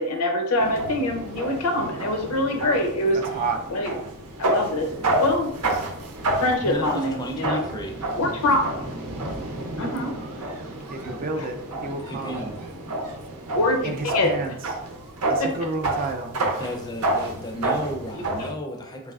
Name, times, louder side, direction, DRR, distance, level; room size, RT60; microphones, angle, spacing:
voice 1, 0.0-3.2 3.7-3.9 4.4-5.8 6.4-7.6 8.2-8.8 9.8-10.1 11.4-11.5 13.5-14.4 15.4-15.5 18.4-18.5, left 1 dB, 75° left, 3 dB, 0.6 m, -24 dB
sound 1, 0.6-18.5, right 2 dB, 85° right, 0.6 m, -29 dB
voice 2, 6.6-8.0 12.1-12.6 16.6-19.1, equal, 20° left, 3 dB, 0.4 m, -33 dB
voice 3, 10.9-12.4 13.8-14.5 15.3-16.4, right 3 dB, 40° right, 4 dB, 0.4 m, -30 dB
3.3 x 3.1 x 2.4 m, 0.75 s
head